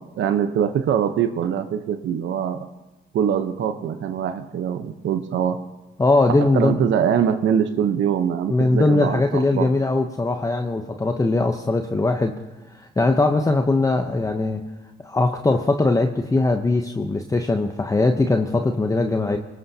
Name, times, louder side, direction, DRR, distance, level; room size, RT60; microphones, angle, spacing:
voice 1, 0.0-2.7 3.1-5.6 6.4-9.7, right 8 dB, 75° right, 8 dB, 1.0 m, -23 dB
voice 2, 6.0-6.8 8.5-12.4 12.8-14.6 15.0-19.4, left 2 dB, 15° left, 5 dB, 0.8 m, -20 dB
24.5 x 18.5 x 2.8 m, 1.1 s
cardioid pair, 90°, 20 cm